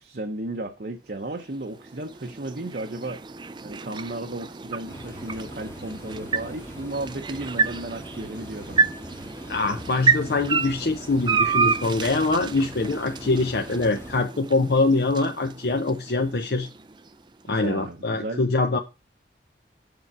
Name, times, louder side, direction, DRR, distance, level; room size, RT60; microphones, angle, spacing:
voice 1, 0.0-3.2 3.6-8.9 17.5-18.4 18.7-18.8, right 2 dB, 60° right, 0.8 m, -34 dB
sound 1, 1.2-17.4, right 5 dB, 25° right, 0.4 m, -30 dB
sound 2, 4.9-14.2, equal, 15° left, 0.8 m, -42 dB
voice 2, 9.5-16.7 17.5-18.8, left 3 dB, 65° left, 0.7 m, -24 dB
6.8 x 4.7 x 5.5 m
head